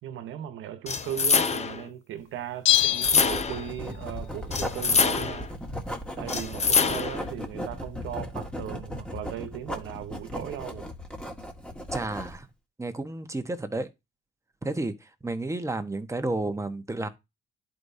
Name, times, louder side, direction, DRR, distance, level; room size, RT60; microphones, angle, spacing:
voice 1, 0.0-5.5 6.2-10.9, right 11 dB, 90° right, 1.1 m, -37 dB
sound 1, 0.9-1.8 2.7-3.7 4.5-5.5 6.3-7.3, left 5 dB, 35° left, 0.8 m, -25 dB
Bell, 2.6-4.0 4.3-4.4, left 14 dB, 75° left, 0.7 m, -25 dB
Writing, 3.0-12.4, left 1 dB, 5° left, 1.6 m, -37 dB
voice 2, 11.9-12.5 12.8-13.9 14.6-17.1, right 2 dB, 15° right, 1.2 m, -31 dB
11.0 x 5.0 x 2.7 m
cardioid pair, 90°, 20 cm